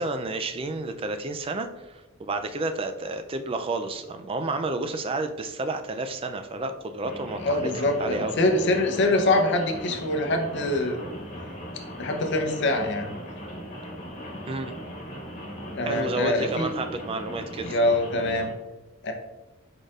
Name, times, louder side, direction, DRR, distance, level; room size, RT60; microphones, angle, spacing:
voice 1, 0.0-8.3 14.5-14.7 15.9-17.8, right 2 dB, 25° right, 8 dB, 0.3 m, -31 dB
Rain, 7.0-18.5, equal, 35° left, 1.4 m, -39 dB
voice 2, 7.4-11.0 12.0-13.1 15.7-16.7 17.6-18.5 19.0-19.1, left 2 dB, 55° left, 3 dB, 0.7 m, -24 dB
4.8 x 4.3 x 2.4 m, 1.1 s
head